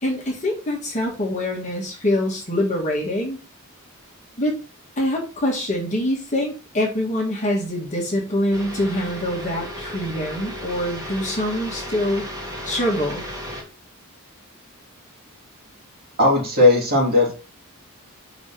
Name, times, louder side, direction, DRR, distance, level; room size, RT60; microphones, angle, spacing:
voice 1, 0.0-3.4 4.4-4.6 5.0-12.3 12.6-13.2, left 1 dB, 30° left, -2 dB, 1.8 m, -24 dB
sound 1, 8.5-13.6, equal, 15° right, 2.3 m, -34 dB
voice 2, 16.2-17.3, left 2 dB, 45° right, -4 dB, 2.9 m, -16 dB
5.2 x 3.9 x 5.9 m, 0.34 s
head